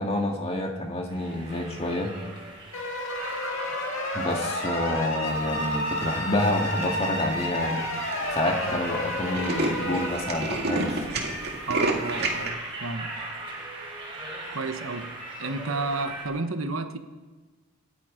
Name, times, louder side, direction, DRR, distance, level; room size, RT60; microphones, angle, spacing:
voice 1, 0.0-2.1 4.1-7.9 8.3-11.0, left 1 dB, 30° left, 2 dB, 1.9 m, -28 dB
sound 1, 1.1-16.2, right 2 dB, 25° right, 4.1 m, -37 dB
sound 2, 2.7-10.1, left 1 dB, 70° left, 2.2 m, -31 dB
Tools, 6.4-6.8 7.5-7.6 7.8-7.9 8.1-8.3 8.6-8.7 9.0-12.5, right 2 dB, 50° right, 2.3 m, -29 dB
voice 2, 11.7-13.2 14.5-17.0, right 3 dB, 80° right, 8 dB, 1.1 m, -31 dB
26.0 x 9.2 x 5.1 m, 1.3 s
head